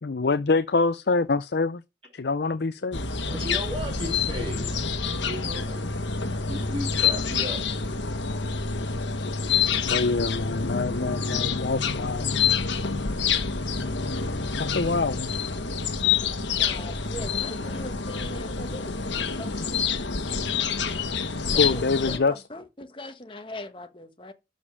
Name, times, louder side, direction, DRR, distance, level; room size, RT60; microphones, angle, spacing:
voice 1, 0.0-1.8 2.1-3.0 9.8-12.3 14.6-15.3 21.6-22.3, left 3 dB, 60° left, 0.5 m, -25 dB
sound 1, 2.9-22.2, left 5 dB, 80° left, 1.4 m, -27 dB
voice 2, 3.3-5.8 6.5-7.6, equal, 30° right, 2.6 m, -35 dB
voice 3, 16.5-19.9 21.5-24.3, left 1 dB, 25° left, 1.3 m, -40 dB
12.5 x 5.2 x 6.8 m
head